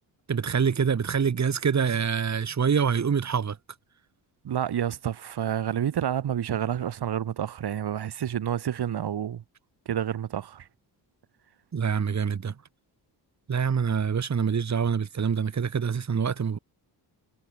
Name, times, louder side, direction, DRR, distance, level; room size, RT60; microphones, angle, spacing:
voice 1, 0.3-3.6 11.7-12.5 13.5-16.6, right 6 dB, 40° right, 2.7 m, -25 dB
voice 2, 4.4-9.4 9.9-10.7, right 9 dB, 65° right, 2.9 m, -29 dB
cardioid pair, 115°, 42 cm